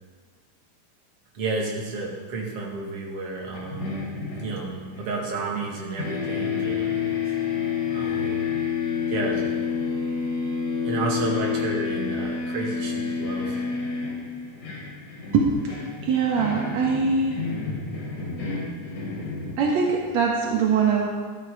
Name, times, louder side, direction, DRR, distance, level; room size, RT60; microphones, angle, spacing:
voice 1, 1.3-4.0 4.4-7.0 7.9-8.5 9.1-9.5 10.8-13.6, right 3 dB, 45° right, -2 dB, 2.2 m, -31 dB
sound 1, 3.5-5.7 6.0-20.0, left 6 dB, 45° left, 4.2 m, -29 dB
voice 2, 16.0-17.4 19.6-21.1, right 5 dB, 75° right, -1 dB, 1.6 m, -22 dB
13.5 x 12.0 x 4.9 m, 1.5 s
omnidirectional pair, 5.1 m